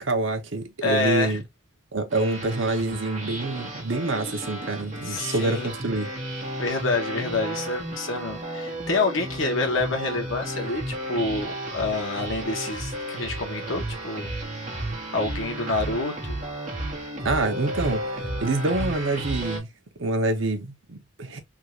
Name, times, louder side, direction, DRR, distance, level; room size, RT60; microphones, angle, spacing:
voice 1, 0.0-1.4 1.9-6.1 17.2-19.7 20.0-21.4, right 2 dB, 70° right, 0.8 m, -26 dB
voice 2, 0.8-1.4 5.1-5.7 6.6-10.8 11.1-14.3 15.1-16.4, left 3 dB, 85° left, 1.1 m, -27 dB
sound 1, 2.1-19.6, right 1 dB, 40° right, 1.3 m, -33 dB
3.7 x 2.4 x 3.0 m
head